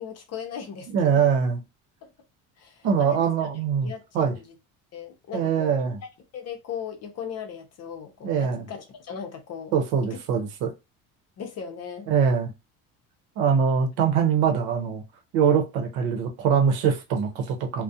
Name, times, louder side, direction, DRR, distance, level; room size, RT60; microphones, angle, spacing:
voice 1, 0.0-1.2 2.0-2.1 2.6-3.3 3.8-4.4 4.9-5.7 6.3-9.7 10.1-10.2 11.4-12.1, left 7 dB, 45° left, 0.6 m, -37 dB
voice 2, 0.9-1.6 2.8-4.4 5.3-6.0 8.2-8.7 9.7-10.7 12.1-12.5 13.4-15.0 15.3-17.8, right 7 dB, 75° right, 0.8 m, -23 dB
2.3 x 2.1 x 2.7 m
cardioid pair, 115°, 37 cm